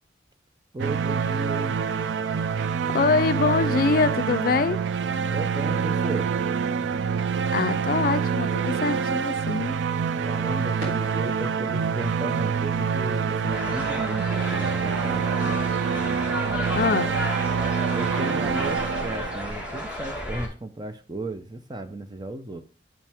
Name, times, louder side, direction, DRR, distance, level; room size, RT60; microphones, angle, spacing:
voice 1, 0.7-1.8 5.3-6.3 10.2-15.6 17.9-22.6, right 2 dB, 25° right, 0.6 m, -34 dB
sound 1, 0.8-19.7, right 6 dB, 80° right, 0.4 m, -26 dB
voice 2, 2.9-4.8 7.5-9.8 16.7-17.2, left 4 dB, 50° left, 0.4 m, -24 dB
sound 2, 5.8-17.2, right 1 dB, 50° right, 3.5 m, -48 dB
sound 3, 13.5-20.5, left 1 dB, 10° right, 1.6 m, -32 dB
7.5 x 5.7 x 3.5 m
head